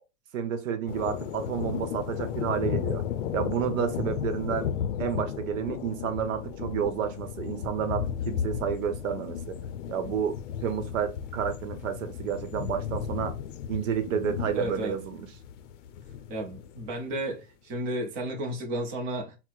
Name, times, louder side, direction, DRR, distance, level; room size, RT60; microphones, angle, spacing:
voice 1, 0.3-3.0 3.3-4.7 5.0-9.6 9.9-13.3 13.7-15.3, right 8 dB, 85° right, 0.8 m, -30 dB
sound 1, 0.9-17.0, left 9 dB, 70° left, 0.5 m, -34 dB
voice 2, 14.5-15.0 16.3-19.4, right 1 dB, 20° right, 0.5 m, -33 dB
4.4 x 2.0 x 2.3 m
supercardioid pair, 160°, 38 cm